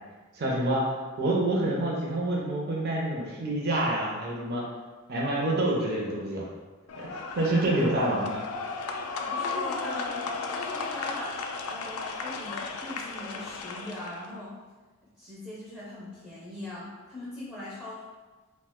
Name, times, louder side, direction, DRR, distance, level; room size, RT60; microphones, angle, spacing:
voice 1, 0.3-0.9 1.2-4.6 5.1-6.5 6.9-8.3, right 1 dB, 45° right, -3 dB, 0.5 m, -27 dB
sound 1, 6.9-14.3, left 4 dB, 75° left, 0.3 m, -34 dB
voice 2, 9.2-10.1 10.5-11.3 11.7-14.5 15.2-18.0, left 1 dB, 5° left, -9 dB, 0.5 m, -41 dB
2.7 x 2.1 x 3.5 m, 1.3 s
head